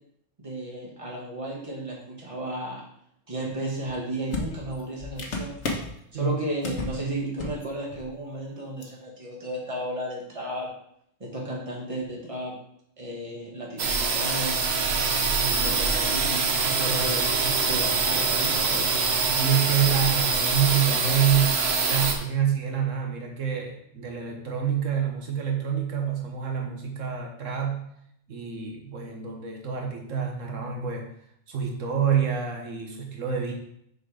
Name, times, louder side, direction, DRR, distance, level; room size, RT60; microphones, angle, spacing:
voice 1, 0.4-2.8 3.3-5.5 6.1-10.7 11.2-12.5 13.0-14.7 15.6-16.4 16.9-17.3 17.6-18.9, right 1 dB, 25° right, -3 dB, 1.7 m, -34 dB
sound 1, 3.9-4.0 4.3-6.0 6.6-7.0 7.3-7.6 7.9-8.1 8.8-8.9, left 3 dB, 65° left, 1.4 m, -32 dB
sound 2, 13.8-22.1, right 4 dB, 60° right, 1.1 m, -24 dB
voice 2, 15.3-16.0 16.7-17.1 17.4-17.7 19.2-27.8 28.3-31.1 31.5-33.5, right 8 dB, 90° right, 1 dB, 1.5 m, -27 dB
6.4 x 4.7 x 4.9 m, 0.71 s
omnidirectional pair, 1.3 m